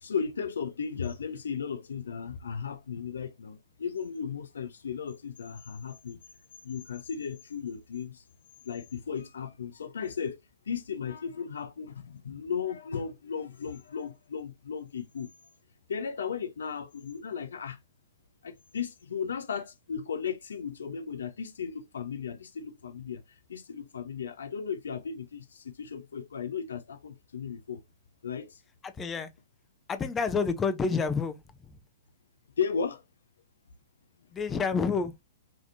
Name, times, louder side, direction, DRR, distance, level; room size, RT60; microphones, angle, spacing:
voice 1, 0.0-6.2 6.6-8.2 8.6-10.4 10.7-15.3 15.9-17.8 18.4-27.8 28.2-28.6 32.6-33.0, left 6 dB, 65° left, 0.6 m, -35 dB
voice 2, 28.8-29.3 29.9-31.4 34.3-35.1, left 5 dB, 20° left, 0.7 m, -28 dB
5.3 x 3.6 x 2.6 m
figure-of-eight pair, 100°, 0 cm